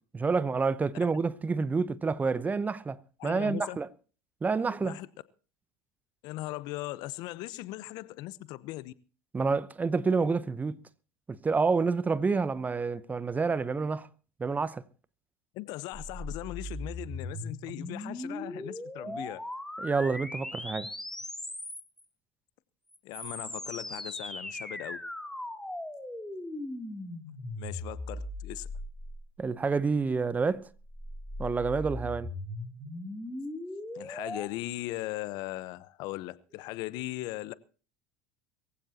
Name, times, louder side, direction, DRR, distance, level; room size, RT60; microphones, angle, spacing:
voice 1, 0.1-3.9 4.4-5.0 9.3-10.8 11.3-14.1 14.4-14.8 19.1-19.2 19.8-20.9 29.4-30.7 31.4-32.3, right 4 dB, 20° right, 0.9 m, -28 dB
voice 2, 3.2-3.8 4.8-5.1 6.2-8.9 15.5-19.4 23.0-25.0 27.6-28.7 33.9-37.5, left 17 dB, 65° left, 0.9 m, -39 dB
sound 1, 15.9-22.0 22.9-29.5 30.6-34.5, left 1 dB, 5° left, 2.9 m, -39 dB
22.0 x 15.5 x 2.9 m
hypercardioid pair, 85°, 8 cm